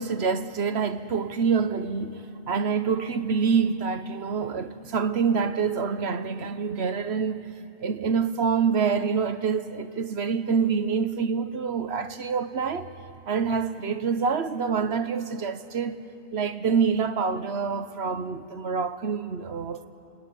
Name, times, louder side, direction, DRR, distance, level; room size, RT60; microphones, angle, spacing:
voice 1, 0.0-7.4 7.8-12.9 13.3-16.0 16.3-19.9, right 6 dB, 65° right, 1.2 m, -26 dB
26.5 x 21.5 x 9.9 m
omnidirectional pair, 1.2 m